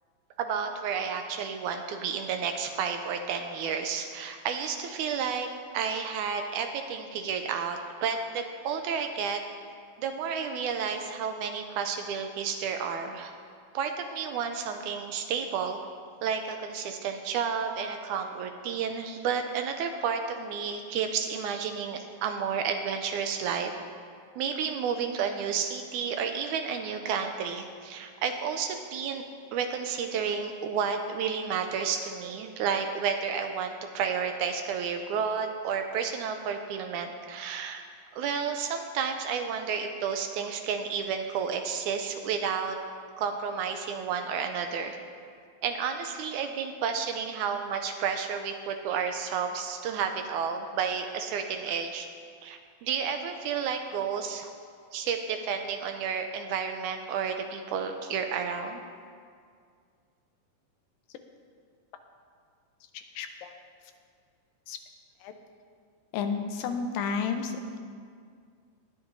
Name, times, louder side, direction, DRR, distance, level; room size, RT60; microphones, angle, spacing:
voice 1, 0.4-5.5 5.7-9.4 10.0-13.3 13.7-15.8 16.2-23.7 24.4-29.2 29.5-37.8 38.1-42.8 43.2-45.0 45.6-52.1 52.4-54.5 54.9-58.8, right 6 dB, 85° right, 5 dB, 1.8 m, -31 dB
voice 2, 62.9-63.5 64.7-64.8 65.2-65.3 66.1-67.8, left 5 dB, 80° left, 6 dB, 2.4 m, -32 dB
19.5 x 10.5 x 2.7 m, 2.1 s
omnidirectional pair, 4.0 m